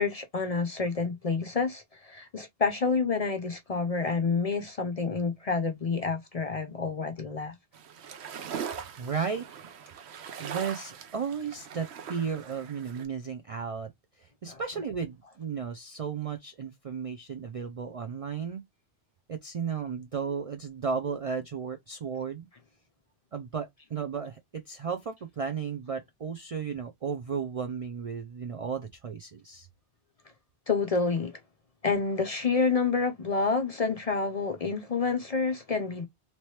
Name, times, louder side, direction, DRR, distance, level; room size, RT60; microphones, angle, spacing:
voice 1, 0.0-7.5 14.5-14.6 30.7-31.4 31.8-36.1, left 4 dB, 50° left, 0.5 m, -28 dB
sound 1, 7.7-13.1, right 7 dB, 85° right, 0.9 m, -41 dB
voice 2, 9.0-9.7 10.1-13.9 14.2-18.6 19.3-22.5 23.3-29.7, right 6 dB, 55° right, 0.4 m, -34 dB
2.9 x 2.9 x 3.1 m
omnidirectional pair, 1.1 m